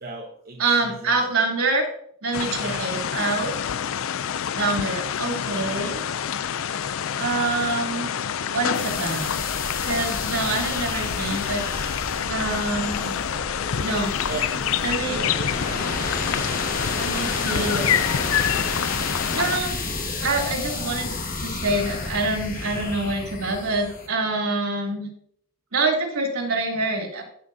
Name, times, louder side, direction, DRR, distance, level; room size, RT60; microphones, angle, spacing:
voice 1, 0.0-1.2 2.6-2.9 14.3-14.7 15.1-15.6 17.5-18.1, right 3 dB, 40° right, 0 dB, 1.0 m, -35 dB
voice 2, 0.6-1.8 2.2-3.5 4.5-6.0 7.2-8.2 8.5-9.4 9.8-11.7 12.3-13.2 13.8-14.1 14.8-15.2 15.7-15.8 17.0-17.9 19.3-19.7 20.2-21.1 21.4-25.1 25.7-27.2, right 3 dB, 75° right, 0 dB, 3.1 m, -26 dB
sound 1, 2.3-19.6, left 8 dB, 65° left, 0.4 m, -27 dB
sound 2, 8.7-24.1, left 3 dB, 40° left, 1.5 m, -31 dB
15.5 x 6.1 x 2.7 m, 0.66 s
head